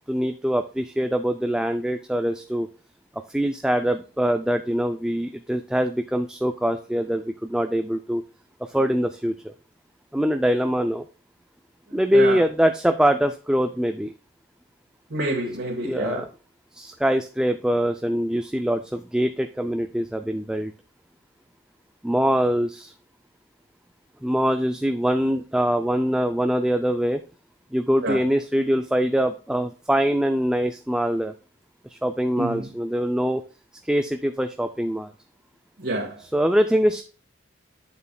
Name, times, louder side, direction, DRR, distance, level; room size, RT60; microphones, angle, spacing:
voice 1, 0.1-2.7 3.3-8.2 8.6-9.5 10.1-11.1 11.9-14.1 15.8-16.3 16.7-20.7 22.0-22.9 24.2-27.2 27.7-31.3 31.9-33.4 33.8-35.1 36.2-37.0, equal, 5° right, 6 dB, 0.3 m, -23 dB
voice 2, 15.1-16.2 28.0-28.2 32.4-32.7 35.8-36.2, right 1 dB, 60° right, -3 dB, 1.6 m, -27 dB
8.9 x 6.9 x 2.3 m, 0.36 s
head